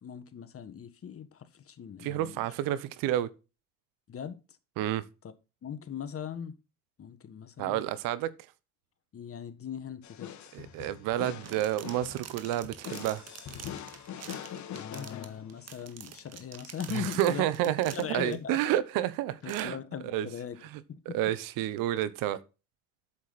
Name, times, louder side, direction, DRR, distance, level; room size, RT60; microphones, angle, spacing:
voice 1, 0.0-2.4 4.1-4.4 5.6-6.5 7.0-7.8 9.1-10.3 14.7-18.7 19.4-20.6 20.9-21.2, left 8 dB, 45° left, 1.5 m, -40 dB
voice 2, 2.0-3.3 4.8-5.0 7.6-8.3 10.5-13.2 16.9-19.8 20.1-20.3 21.1-22.4, right 13 dB, 80° right, 1.0 m, -30 dB
sound 1, 10.0-15.9, left 9 dB, 60° left, 1.6 m, -43 dB
sound 2, 11.1-18.4 19.0-19.1 19.4-19.6, right 8 dB, 50° right, 1.8 m, -47 dB
8.6 x 7.2 x 4.1 m
supercardioid pair, 75°, 33 cm